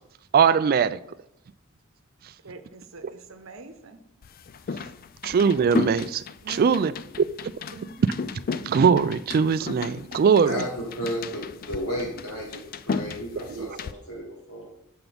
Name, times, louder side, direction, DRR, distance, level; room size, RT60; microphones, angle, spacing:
voice 1, 0.3-1.0 3.0-3.1 5.2-6.9 8.7-10.6 13.6-13.8, right 6 dB, 45° right, 0.3 m, -21 dB
voice 2, 2.4-4.0 6.4-6.9 7.6-8.1, right 2 dB, 65° right, 0.9 m, -43 dB
sound 1, 4.2-13.9, left 5 dB, 40° left, 0.3 m, -35 dB
voice 3, 10.4-14.7, equal, 80° left, 3.7 m, -33 dB
7.0 x 5.9 x 5.2 m
head